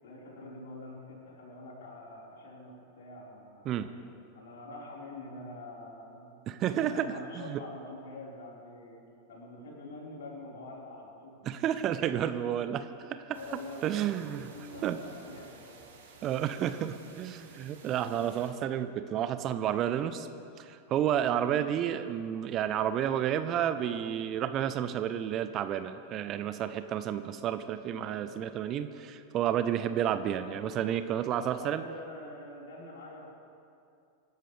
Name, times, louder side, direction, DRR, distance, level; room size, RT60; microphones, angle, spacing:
voice 1, 0.0-3.9 4.3-9.0 9.3-11.3 12.1-12.5 13.3-13.9 14.3-15.8 18.0-18.2 21.4-21.6 23.8-23.9 27.9-28.5 31.3-33.3, left 2 dB, 65° left, -4 dB, 4.7 m, -46 dB
voice 2, 6.5-7.6 11.4-13.4 13.8-14.5 14.8-15.0 16.2-20.3 20.6-31.8, right 10 dB, 35° right, 11 dB, 0.7 m, -31 dB
sound 1, 13.3-18.5, right 4 dB, 70° right, 2.9 m, -54 dB
25.5 x 12.5 x 3.4 m, 2.5 s
figure-of-eight pair, 95°, 0 cm